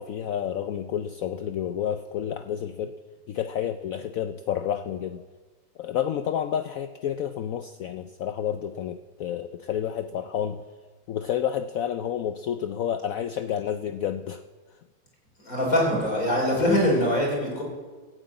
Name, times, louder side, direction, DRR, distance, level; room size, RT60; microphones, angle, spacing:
voice 1, 0.0-3.0 3.3-5.2 5.8-10.6 11.1-14.4, left 9 dB, 85° left, 9 dB, 0.7 m, -30 dB
voice 2, 15.4-17.6, left 1 dB, 45° left, -2 dB, 4.8 m, -23 dB
14.5 x 7.8 x 8.8 m, 1.4 s
omnidirectional pair, 2.0 m